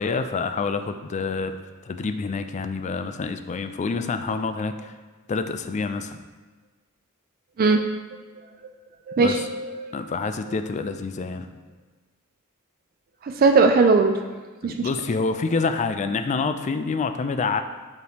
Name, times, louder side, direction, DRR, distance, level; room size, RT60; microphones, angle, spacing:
voice 1, 0.0-1.5 1.8-4.9 5.3-6.2 9.2-9.4 9.9-11.5 14.6-17.6, left 4 dB, 35° left, 8 dB, 0.3 m, -27 dB
voice 2, 9.1-9.9 13.2-14.1 14.6-14.9, right 4 dB, 45° right, 5 dB, 0.4 m, -19 dB
9.3 x 3.1 x 3.3 m, 1.3 s
head